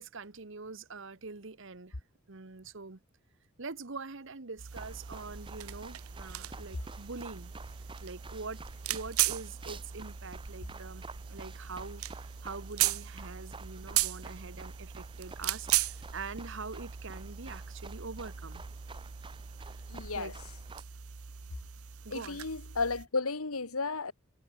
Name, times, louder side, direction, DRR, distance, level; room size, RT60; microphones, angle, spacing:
voice 1, 0.0-1.9 2.3-3.0 3.6-7.5 8.0-8.6 8.9-11.0 11.3-18.6 20.1-20.3 22.0-22.4, right 4 dB, 60° right, 1.2 m, -44 dB
sound 1, 4.6-23.1, right 12 dB, 90° right, 0.9 m, -37 dB
sound 2, 4.7-20.8, right 3 dB, 25° right, 1.8 m, -50 dB
voice 2, 19.9-20.4 22.1-24.1, left 4 dB, 90° left, 1.9 m, -33 dB
head